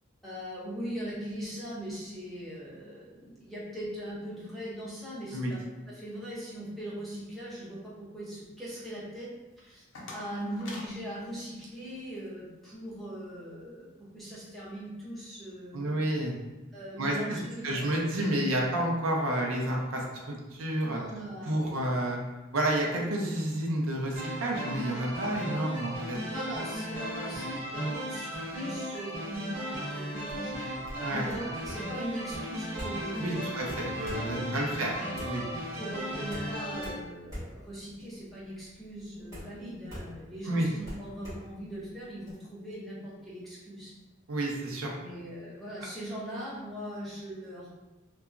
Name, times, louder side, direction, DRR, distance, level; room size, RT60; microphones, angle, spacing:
voice 1, 0.2-5.6 5.9-9.3 9.6-13.9 14.1-16.0 16.7-18.2 20.8-21.9 26.3-30.7 31.1-33.5 34.1-34.7 35.8-43.9 45.0-47.7, equal, ahead, -9 dB, 0.7 m, -40 dB
sound 1, 9.5-12.3, left 2 dB, 60° left, 0.5 m, -48 dB
voice 2, 15.7-16.4 17.0-17.1 17.6-21.0 21.5-22.2 22.5-26.2 27.7-28.0 31.0-31.5 33.2-34.9 35.2-35.4 40.5-40.7 44.3-44.9, right 1 dB, 80° right, -1 dB, 0.5 m, -30 dB
sound 2, 24.1-36.9, equal, 45° right, 1.0 m, -36 dB
sound 3, 30.3-42.3, equal, 15° right, 1.4 m, -44 dB
2.8 x 2.3 x 2.4 m, 1.1 s
head